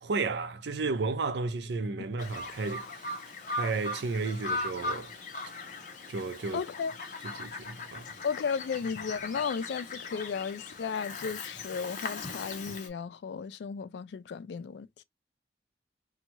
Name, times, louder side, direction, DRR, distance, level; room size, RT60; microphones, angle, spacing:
voice 1, 0.0-3.1 3.5-5.1 6.1-6.6 7.2-8.1, right 3 dB, 80° right, 0.5 m, -33 dB
Bird vocalization bird call bird song, 2.2-12.9, left 2 dB, 45° left, 0.7 m, -39 dB
voice 2, 6.5-6.9 8.2-15.0, left 6 dB, 80° left, 0.3 m, -34 dB
2.7 x 2.3 x 2.8 m
head